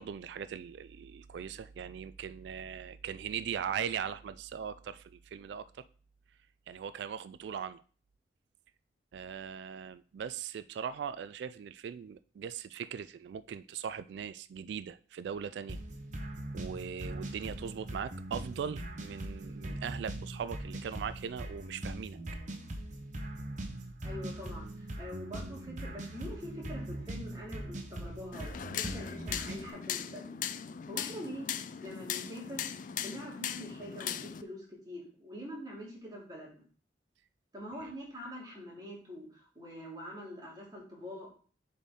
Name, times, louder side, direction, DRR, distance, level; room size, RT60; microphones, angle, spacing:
voice 1, 0.0-5.8 6.7-7.8 9.1-15.8 16.2-16.3 16.5-22.2 37.8-37.9, right 7 dB, 70° right, 0.3 m, -40 dB
sound 1, 15.7-29.7, right 1 dB, 45° right, 0.9 m, -41 dB
voice 2, 24.0-24.7 25.0-30.4 30.9-31.5 31.8-32.6 33.0-36.6 37.5-41.3, equal, 25° right, 2.5 m, -44 dB
sound 2, 28.3-34.4, left 9 dB, 45° left, 0.4 m, -39 dB
6.9 x 4.2 x 3.6 m
head